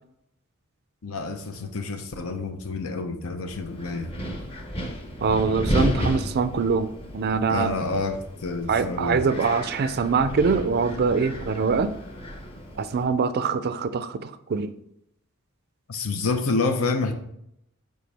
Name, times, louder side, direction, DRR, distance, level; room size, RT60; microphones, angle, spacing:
voice 1, 1.0-4.2 7.5-9.3 15.9-17.1, left 3 dB, 75° left, 7 dB, 0.8 m, -28 dB
Wind, 3.5-13.0, equal, 25° left, 0.9 m, -33 dB
voice 2, 5.2-7.7 8.7-12.0 12.8-14.7, right 5 dB, 50° right, 13 dB, 0.4 m, -24 dB
7.7 x 4.6 x 3.4 m, 0.78 s
head